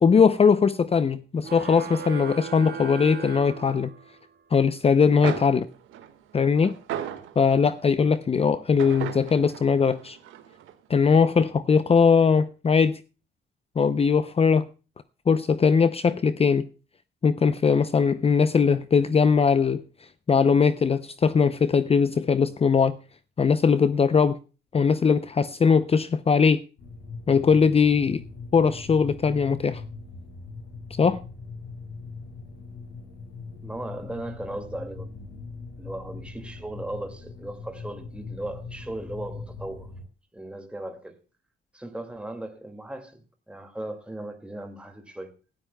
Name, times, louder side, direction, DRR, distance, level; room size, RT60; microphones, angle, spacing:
voice 1, 0.0-3.9 4.5-5.7 6.3-6.7 7.4-10.2 10.9-13.0 13.8-14.7 15.3-16.7 17.2-19.8 20.3-23.0 23.4-24.4 24.7-26.6 27.3-28.2 28.5-29.8 31.0-31.2, left 5 dB, 30° left, 0.6 m, -20 dB
sound 1, 1.4-4.3, right 7 dB, 55° right, 3.1 m, -37 dB
sound 2, 4.9-5.0 5.2-7.8 8.8-10.7, right 10 dB, 90° right, 1.7 m, -36 dB
sound 3, 26.8-40.0, left 4 dB, 80° left, 7.9 m, -41 dB
voice 2, 33.6-35.1 35.8-39.9 40.3-41.2 41.7-43.2 43.5-45.3, right 1 dB, 5° right, 2.3 m, -37 dB
19.5 x 12.5 x 2.3 m
cardioid pair, 90°, 20 cm